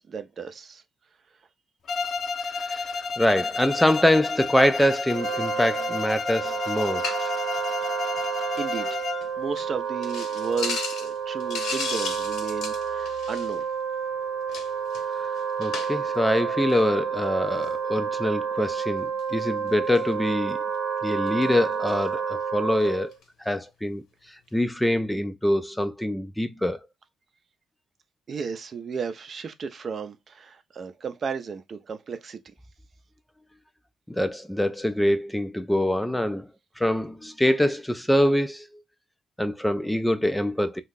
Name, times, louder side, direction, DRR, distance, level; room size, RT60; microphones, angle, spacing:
voice 1, 0.1-0.8 8.6-9.0 9.4-13.6 28.3-32.4, right 5 dB, 50° right, 0.5 m, -34 dB
Bowed string instrument, 1.9-9.3, left 4 dB, 55° left, 0.6 m, -31 dB
voice 2, 2.5-7.3 15.2-15.3 15.6-20.6 21.0-23.1 23.4-24.0 24.5-26.8 34.1-36.5 36.8-38.7 39.4-40.8, left 1 dB, 5° left, 0.3 m, -24 dB
Wind instrument woodwind instrument, 5.0-23.2, right 6 dB, 65° right, 0.8 m, -30 dB
sound 1, 6.7-7.3 7.6-7.9 8.2-8.3 8.6-8.7 9.2-9.3 9.6-9.7 10.0-13.7 14.5-16.2 16.6-16.8 17.5-17.7 19.2-19.4 20.0-20.1 20.7-20.8 21.0-22.0 22.8-22.9 23.1-23.2, left 4 dB, 80° left, 1.1 m, -35 dB
2.7 x 2.4 x 3.7 m
cardioid pair, 90°, 0 cm